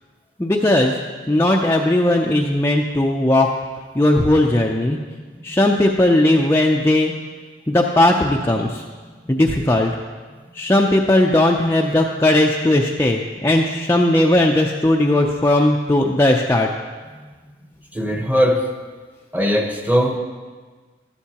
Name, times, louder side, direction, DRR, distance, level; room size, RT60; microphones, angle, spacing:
voice 1, 0.4-1.0 1.3-3.5 4.0-5.0 5.4-7.1 7.7-8.8 9.3-9.9 10.6-16.7, left 1 dB, 15° left, 0 dB, 0.5 m, -17 dB
voice 2, 17.9-18.6 19.3-20.2, equal, 10° right, 3 dB, 0.9 m, -19 dB
13.0 x 13.0 x 2.9 m, 1.4 s
head